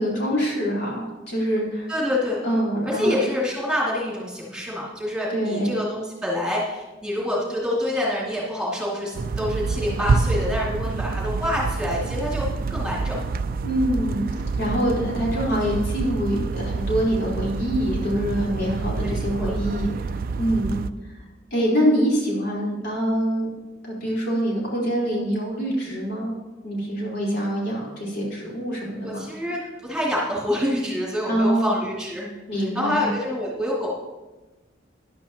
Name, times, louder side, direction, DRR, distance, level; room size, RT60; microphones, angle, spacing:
voice 1, 0.0-1.9 2.4-3.2 5.3-5.8 13.6-14.2 14.6-21.2 21.5-23.5 23.8-26.3 26.6-29.3 31.3-31.7 32.5-33.1, equal, 60° left, -4 dB, 4.3 m, -25 dB
voice 2, 1.9-2.4 2.9-12.4 12.7-13.4 19.0-19.5 29.0-34.0, left 1 dB, 5° right, -6 dB, 2.5 m, -27 dB
sound 1, 9.1-20.9, right 4 dB, 50° right, 0.4 m, -27 dB
14.0 x 11.0 x 3.0 m, 1.1 s
head